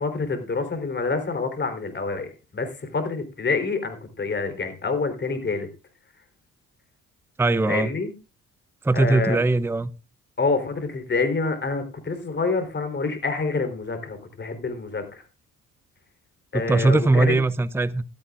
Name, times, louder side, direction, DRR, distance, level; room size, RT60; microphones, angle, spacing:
voice 1, 0.0-5.7 7.7-8.1 8.9-9.4 10.4-15.2 16.5-17.3, left 4 dB, 35° left, 3.6 m, -27 dB
voice 2, 7.4-7.9 8.8-9.9 16.5-18.0, right 2 dB, 10° right, 0.6 m, -20 dB
15.5 x 13.0 x 2.5 m
cardioid pair, 90°, 30 cm